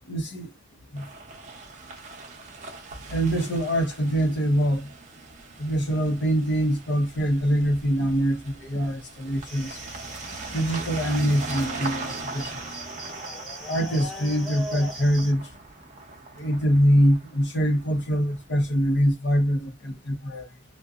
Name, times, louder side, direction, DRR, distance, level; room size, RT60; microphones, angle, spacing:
voice 1, 0.1-0.5 0.9-1.1 3.1-4.9 5.6-9.8 10.5-12.6 13.7-15.5 16.4-20.5, equal, 65° left, 0.7 m, -24 dB
sound 1, 1.0-18.6, right 3 dB, 40° right, 0.6 m, -40 dB
sound 2, 9.5-15.3, equal, ahead, 0.8 m, -40 dB
2.6 x 2.1 x 2.3 m
head